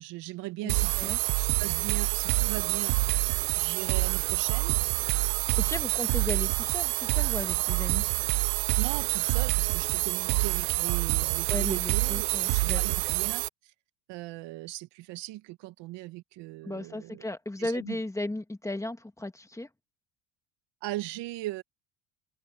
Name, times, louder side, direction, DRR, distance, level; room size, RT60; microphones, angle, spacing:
voice 1, 0.0-2.9 3.5-4.8 8.8-13.7 14.1-17.2 17.6-18.0 20.8-21.6, right 18 dB, 65° right, 1.4 m, -39 dB
voice 2, 0.6-1.2 5.6-8.0 11.5-13.0 16.6-19.7, left 2 dB, 5° left, 1.7 m, -36 dB
sound 1, 0.7-13.5, right 23 dB, 85° right, 1.0 m, -27 dB
cardioid pair, 120°, 46 cm